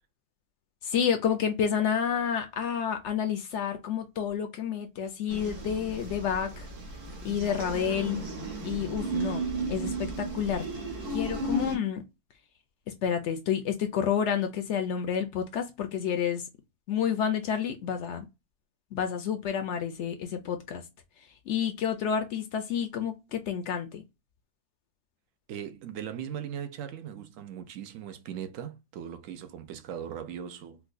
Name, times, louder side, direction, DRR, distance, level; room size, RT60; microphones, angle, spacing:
voice 1, 0.8-6.7 7.2-8.2 8.6-10.6 11.1-12.1 12.9-16.5 16.9-18.2 18.9-20.8 21.5-24.0, left 8 dB, 65° left, 0.7 m, -29 dB
sound 1, 5.3-11.8, right 2 dB, 90° right, 1.7 m, -34 dB
voice 2, 25.5-30.8, right 9 dB, 70° right, 0.9 m, -39 dB
4.6 x 2.1 x 2.4 m
omnidirectional pair, 1.6 m